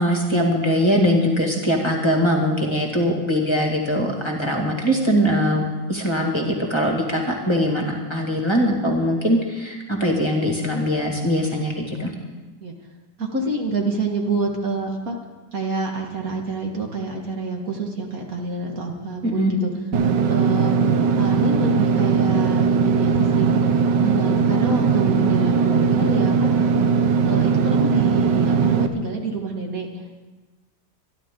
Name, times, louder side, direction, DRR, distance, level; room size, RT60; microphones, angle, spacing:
voice 1, 0.0-12.1 19.2-19.5, equal, 15° left, 0 dB, 1.9 m, -21 dB
voice 2, 13.2-15.2 15.5-19.7 20.3-20.8 21.1-23.5 24.0-26.7 27.3-30.2, right 3 dB, 55° right, 1 dB, 2.0 m, -27 dB
Engine / Mechanisms, 19.9-28.9, right 5 dB, 85° right, 1.5 m, -19 dB
26.5 x 11.0 x 3.8 m, 1.2 s
omnidirectional pair, 1.9 m